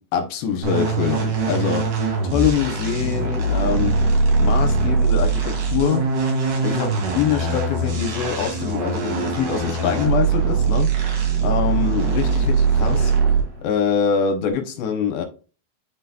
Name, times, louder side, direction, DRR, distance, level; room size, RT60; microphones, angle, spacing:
voice 1, 0.0-1.9 2.2-4.0 4.4-6.1 6.6-6.9 7.2-13.1 13.6-15.3, left 7 dB, 75° left, 2.5 m, -24 dB
sound 1, 0.6-13.6, right 4 dB, 60° right, 3.2 m, -21 dB
10.5 x 3.9 x 2.2 m
omnidirectional pair, 4.5 m